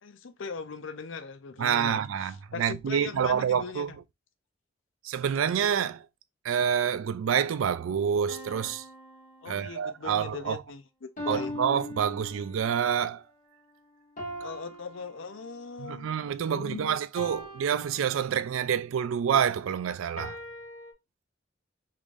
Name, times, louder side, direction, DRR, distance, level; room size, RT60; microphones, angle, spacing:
voice 1, 0.0-2.0 2.5-4.0 9.4-11.5 14.4-17.0, left 5 dB, 75° left, 0.5 m, -40 dB
voice 2, 1.6-3.9 5.0-6.1 6.4-8.9 9.5-10.6 11.3-13.2 15.8-20.4, right 8 dB, 90° right, 0.3 m, -27 dB
sound 1, 8.3-10.1 11.2-12.8 14.2-15.8 17.2-18.7 20.2-20.9, left 1 dB, 40° left, 1.1 m, -41 dB
3.6 x 2.6 x 3.2 m
head